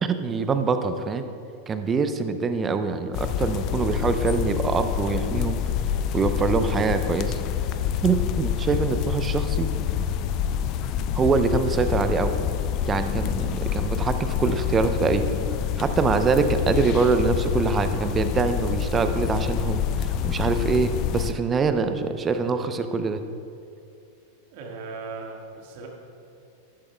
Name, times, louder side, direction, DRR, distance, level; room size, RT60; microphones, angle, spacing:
voice 1, 0.0-1.3 1.7-5.6 6.1-7.4 8.0-9.7 11.1-12.4 12.9-15.3 15.8-23.2, right 4 dB, 20° right, 9 dB, 0.6 m, -24 dB
sound 1, 3.1-21.3, left 9 dB, 40° left, 0.4 m, -27 dB
voice 2, 24.5-25.9, right 4 dB, 50° right, 0 dB, 1.7 m, -37 dB
13.5 x 12.5 x 2.3 m, 2.6 s
figure-of-eight pair, 90°, 0 cm